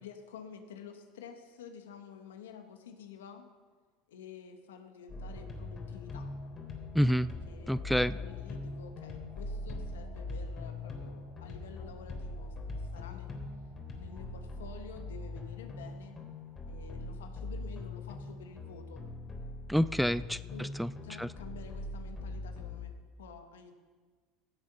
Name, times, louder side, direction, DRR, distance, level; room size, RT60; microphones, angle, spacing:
voice 1, 0.0-3.5 4.1-6.3 7.5-13.4 13.9-16.2 16.6-19.0 20.5-23.7, left 7 dB, 85° left, 6 dB, 1.5 m, -50 dB
sound 1, 5.1-22.8, left 2 dB, 35° left, 3.5 m, -42 dB
voice 2, 6.9-7.3 7.7-8.1 19.7-20.9 21.2-21.3, equal, ahead, 17 dB, 0.4 m, -28 dB
16.5 x 7.6 x 5.6 m, 1.5 s
hypercardioid pair, 80°, 0 cm